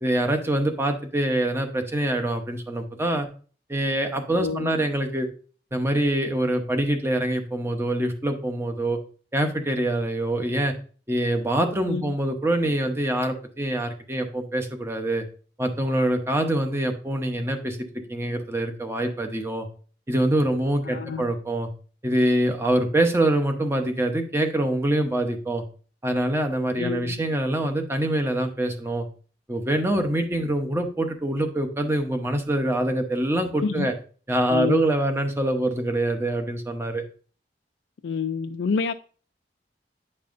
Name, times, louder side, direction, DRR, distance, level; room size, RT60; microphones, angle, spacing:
voice 1, 0.0-3.3 3.7-5.3 5.7-9.0 9.3-10.7 11.1-15.2 15.6-17.8 18.1-19.7 20.1-21.7 22.0-25.6 26.0-29.1 29.5-33.9 34.3-37.0, right 1 dB, 15° right, 0.8 m, -25 dB
voice 2, 4.3-4.7 11.8-12.1 20.8-21.3 26.8-27.2 33.6-33.9 34.5-34.9 38.0-38.9, left 5 dB, 90° left, 0.4 m, -28 dB
9.4 x 5.4 x 2.6 m
head